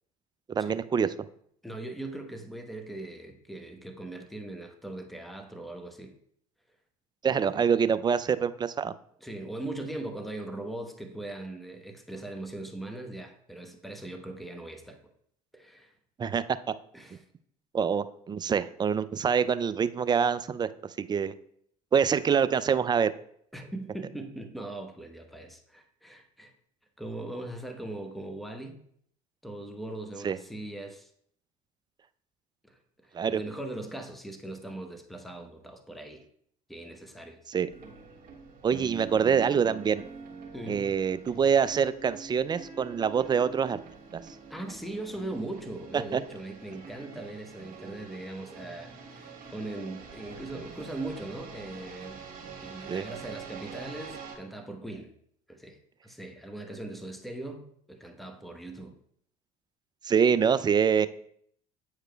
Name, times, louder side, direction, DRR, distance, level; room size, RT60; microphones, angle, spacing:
voice 1, 0.5-1.1 7.2-8.9 16.2-16.4 17.7-20.7 21.0-21.3 21.9-23.1 30.2-30.4 33.1-33.4 37.5-37.7 38.6-40.0 40.7-43.8 44.1-44.2 46.1-46.2 52.9-53.0 60.0-61.1, right 7 dB, 25° right, 15 dB, 0.3 m, -25 dB
voice 2, 1.6-6.1 7.2-7.6 9.2-15.0 15.5-15.9 16.9-17.2 23.5-26.5 27.0-28.8 29.4-31.1 32.7-36.2 36.7-37.4 40.5-40.9 44.5-52.2 52.6-55.1 55.5-59.0, right 2 dB, ahead, 5 dB, 0.9 m, -40 dB
sound 1, 37.7-54.4, right 5 dB, 50° right, 1.5 m, -45 dB
8.8 x 4.8 x 2.2 m, 0.66 s
hypercardioid pair, 65°, 19 cm